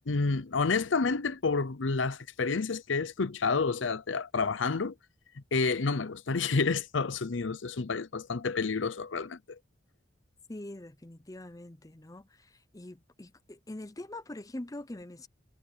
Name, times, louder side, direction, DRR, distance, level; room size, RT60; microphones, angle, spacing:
voice 1, 0.1-4.9 5.5-9.6, left 4 dB, 85° left, 0.7 m, -29 dB
voice 2, 10.5-15.3, left 1 dB, 20° left, 0.7 m, -44 dB
head